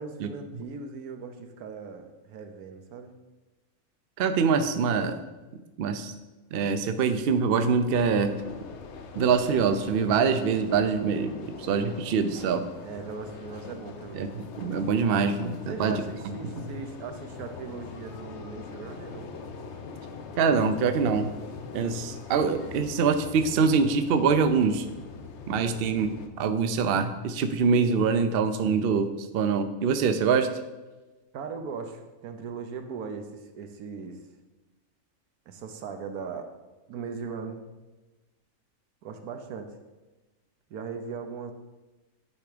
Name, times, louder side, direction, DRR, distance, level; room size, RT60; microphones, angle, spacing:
voice 1, 0.0-3.1 12.8-14.4 15.7-19.3 25.6-25.8 31.3-34.2 35.5-36.5 36.9-37.7 39.0-39.8 40.7-41.5, right 5 dB, 80° right, 6 dB, 1.2 m, -39 dB
voice 2, 4.2-5.2 5.8-6.1 6.5-8.4 9.2-12.6 14.1-15.5 15.8-16.0 16.3-16.4 16.6-16.7 20.4-21.3 21.7-24.9 25.5-26.1 26.4-30.5, right 5 dB, 65° right, 8 dB, 0.6 m, -24 dB
sound 1, 7.9-26.3, left 5 dB, 60° left, 0.8 m, -42 dB
9.6 x 3.5 x 4.9 m, 1.1 s
omnidirectional pair, 1.6 m